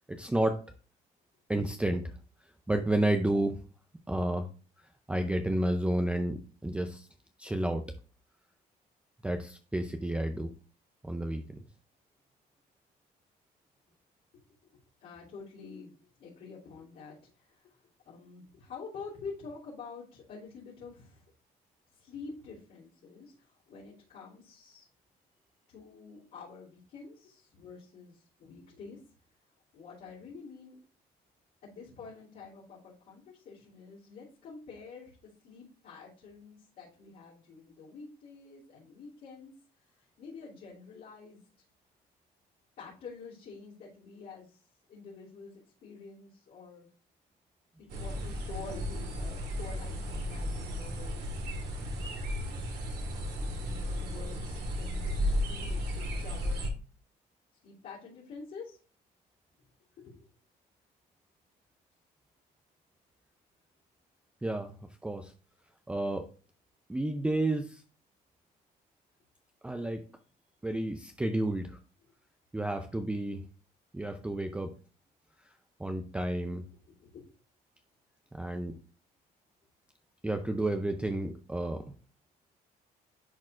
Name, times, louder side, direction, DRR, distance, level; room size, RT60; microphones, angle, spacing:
voice 1, 0.1-0.6 1.5-2.0 2.7-3.6 4.1-4.5 5.1-7.1 7.4-7.8 9.2-10.5 11.0-11.4 64.4-64.7 65.0-65.3 65.9-66.3 66.9-67.8 69.6-70.0 70.6-71.8 72.5-73.4 73.9-74.7 75.8-76.6 78.3-78.7 80.2-81.8, right 1 dB, 5° right, 6 dB, 0.5 m, -31 dB
voice 2, 14.6-17.8 18.0-21.3 21.9-24.9 25.7-29.0 29.7-30.8 31.6-39.5 40.0-41.4 42.8-46.9 47.8-51.3 53.0-53.2 53.6-56.7 57.6-58.8 60.0-60.3 76.9-77.3, left 4 dB, 65° left, -10 dB, 2.9 m, -48 dB
sound 1, 47.9-56.7, equal, 75° right, 2.0 m, -34 dB
10.5 x 4.1 x 2.5 m, 0.37 s
cardioid pair, 110°, 17 cm